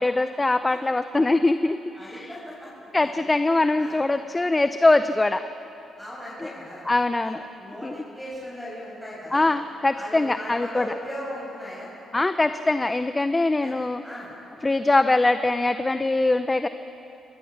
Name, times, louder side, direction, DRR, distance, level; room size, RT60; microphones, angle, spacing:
voice 1, 0.0-2.4 2.9-5.4 6.4-6.5 6.9-7.4 7.8-7.9 9.3-10.9 12.1-14.0 14.6-16.7, left 2 dB, 20° left, 10 dB, 0.7 m, -22 dB
voice 2, 1.9-2.7 3.0-3.2 3.8-4.0 6.0-6.9 7.2-7.3 7.6-9.5 10.0-11.9 13.6-13.8 14.0-14.3, equal, ahead, -7 dB, 7.7 m, -38 dB
26.5 x 20.0 x 7.3 m, 3.0 s
cardioid pair, 90°, 0 cm